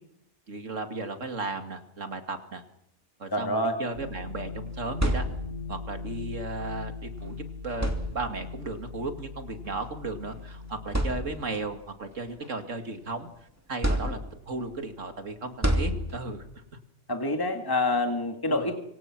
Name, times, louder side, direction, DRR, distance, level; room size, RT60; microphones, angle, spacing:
voice 1, 0.5-2.6 3.2-5.3 5.7-7.4 7.6-13.3 13.7-14.2 14.5-16.5 18.5-18.7, right 3 dB, 85° right, 6 dB, 2.7 m, -35 dB
voice 2, 3.3-3.8 17.1-18.8, left 2 dB, 15° left, 5 dB, 2.0 m, -27 dB
sound 1, 3.9-11.1, left 4 dB, 70° right, 7.2 m, -39 dB
sound 2, 4.7-5.8 7.1-7.2 7.7-8.6 9.7-9.8 10.4-10.5 10.9-11.7 12.2-13.2 13.8-14.6 15.6-16.5, equal, 10° right, 2.8 m, -29 dB
26.0 x 24.5 x 6.1 m, 0.76 s
omnidirectional pair, 1.3 m